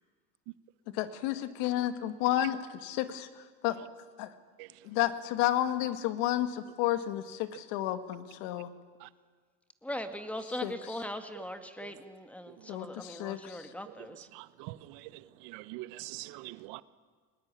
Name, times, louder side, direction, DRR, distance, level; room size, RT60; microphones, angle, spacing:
voice 1, 0.9-3.8 4.2-4.3 4.8-8.7 10.6-10.7 12.7-13.7, left 13 dB, 75° left, 1.9 m, -31 dB
voice 2, 9.8-14.3, left 1 dB, 5° left, 2.0 m, -40 dB
voice 3, 14.3-15.0 15.4-16.8, right 19 dB, 70° right, 1.1 m, -43 dB
22.0 x 20.0 x 9.7 m
supercardioid pair, 125°, 35 cm